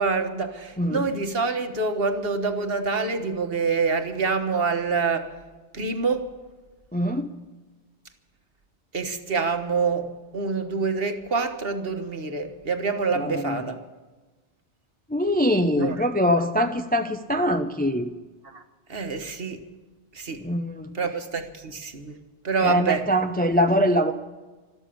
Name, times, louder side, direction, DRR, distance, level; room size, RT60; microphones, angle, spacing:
voice 1, 0.0-5.3 5.7-6.3 8.9-10.1 10.3-13.8 15.8-16.0 18.5-18.6 18.9-19.6 20.2-20.4 21.0-22.1 22.4-23.1, right 4 dB, 55° right, 7 dB, 1.6 m, -26 dB
voice 2, 0.8-1.1 6.9-7.3 13.2-13.6 15.1-18.1 20.4-20.9 22.6-24.1, equal, 10° left, 7 dB, 0.6 m, -23 dB
13.0 x 12.5 x 8.5 m, 1.2 s
omnidirectional pair, 1.2 m